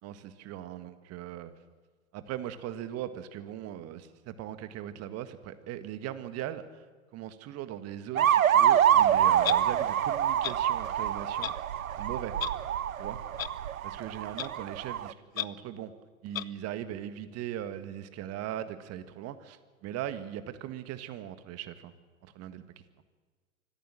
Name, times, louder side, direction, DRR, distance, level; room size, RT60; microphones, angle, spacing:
voice 1, 0.0-1.5 2.1-6.8 7.1-11.5 12.0-12.3 13.0-13.2 13.8-15.9 16.2-21.9 22.2-22.6, right 11 dB, 35° right, 11 dB, 1.7 m, -39 dB
sound 1, 8.2-15.1, right 10 dB, 80° right, 0.7 m, -26 dB
Clock, 9.4-9.6 10.4-10.5 11.4-11.5 12.4-12.5 13.4-13.5 14.4-14.5 15.3-15.4 16.3-16.4, left 12 dB, 75° left, 0.8 m, -32 dB
25.0 x 14.5 x 7.7 m, 1.5 s
figure-of-eight pair, 95°, 41 cm